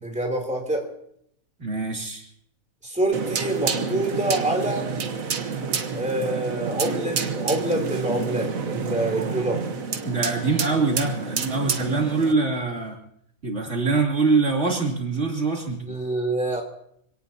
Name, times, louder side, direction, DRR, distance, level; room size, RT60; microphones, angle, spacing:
voice 1, 0.0-0.9 2.8-4.9 5.9-9.6 15.8-16.6, right 1 dB, 5° right, 1 dB, 3.2 m, -26 dB
voice 2, 1.6-2.3 10.0-13.0 13.4-15.9, right 3 dB, 55° right, -1 dB, 3.4 m, -24 dB
sound 1, 3.1-12.3, right 5 dB, 70° right, 1.6 m, -29 dB
26.0 x 18.0 x 2.8 m, 0.69 s
omnidirectional pair, 1.5 m